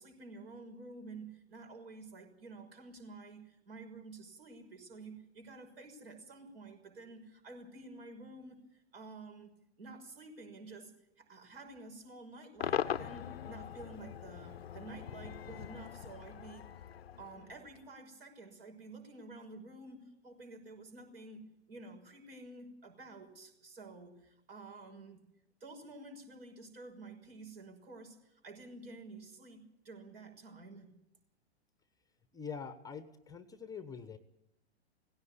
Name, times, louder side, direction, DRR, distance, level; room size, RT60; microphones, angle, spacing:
voice 1, 0.0-16.7 17.2-25.2 25.6-30.9, right 3 dB, 60° right, 4 dB, 6.2 m, -51 dB
Cheering / Crowd / Fireworks, 12.6-17.9, left 9 dB, 65° left, 0.7 m, -41 dB
voice 2, 32.3-34.2, left 6 dB, 10° left, 12 dB, 1.0 m, -44 dB
17.5 x 16.5 x 9.9 m, 0.83 s
figure-of-eight pair, 105°, 33 cm